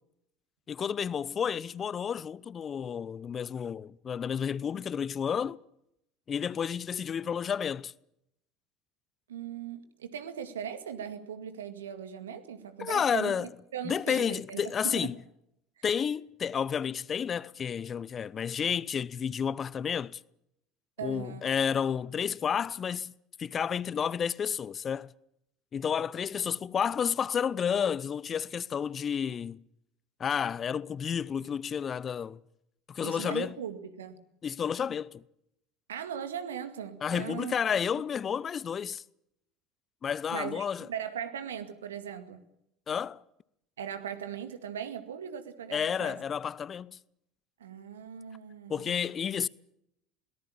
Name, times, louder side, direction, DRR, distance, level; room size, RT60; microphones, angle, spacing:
voice 1, 0.7-5.6 6.3-7.9 12.8-13.5 13.8-15.2 15.8-20.2 21.0-23.1 23.4-25.1 25.7-29.6 30.2-32.4 32.9-33.5 34.4-35.2 37.0-39.0 40.0-40.9 42.9-43.2 45.7-47.0 48.7-49.5, left 7 dB, 35° left, 0.8 m, -31 dB
voice 2, 9.3-15.1 15.8-15.9 21.0-21.5 33.0-34.2 35.9-37.5 40.3-42.4 43.8-46.2 47.6-49.0, right 8 dB, 80° right, 2.1 m, -39 dB
22.5 x 19.0 x 8.7 m
figure-of-eight pair, 70°, 0 cm